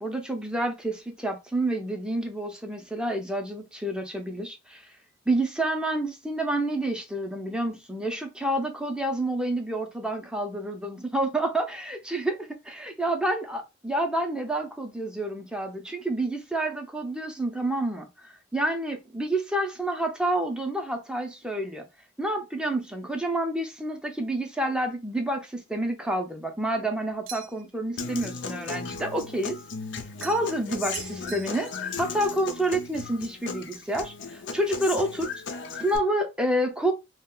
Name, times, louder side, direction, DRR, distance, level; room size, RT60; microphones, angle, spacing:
voice 1, 0.0-4.9 5.3-21.9 22.2-29.6 30.2-35.3 35.7-36.9, right 1 dB, 5° right, 0.4 m, -29 dB
sound 1, 27.3-27.8 30.2-30.6 30.9-31.9, right 10 dB, 75° right, 0.4 m, -41 dB
Human voice / Acoustic guitar, 28.0-36.0, left 4 dB, 60° left, 0.5 m, -36 dB
2.3 x 2.1 x 3.6 m
head